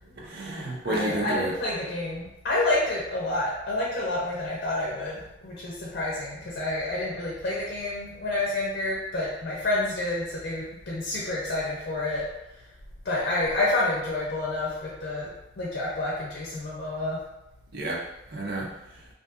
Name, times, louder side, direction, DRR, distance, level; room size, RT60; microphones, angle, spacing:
voice 1, 0.0-1.5 17.7-19.1, right 1 dB, 60° right, -3 dB, 0.6 m, -32 dB
voice 2, 0.8-12.2 13.0-15.3 15.6-17.2, left 2 dB, 55° left, -5 dB, 0.5 m, -29 dB
2.6 x 2.5 x 2.4 m, 0.91 s
head